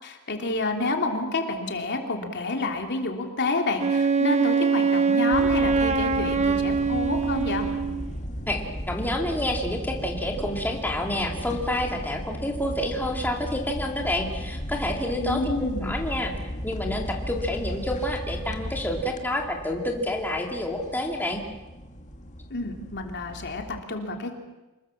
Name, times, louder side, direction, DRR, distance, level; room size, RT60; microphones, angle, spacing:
voice 1, 0.0-7.7 15.2-16.0 22.5-24.4, left 2 dB, 50° left, 3 dB, 3.3 m, -29 dB
Wind instrument woodwind instrument, 3.8-8.1, right 5 dB, 30° right, 1.2 m, -23 dB
sound 1, 5.3-23.8, equal, 35° left, 2.0 m, -35 dB
voice 2, 8.9-15.5 15.8-16.3 16.6-21.4, left 1 dB, 10° left, 1 dB, 2.6 m, -28 dB
27.0 x 21.5 x 7.4 m, 1.1 s
head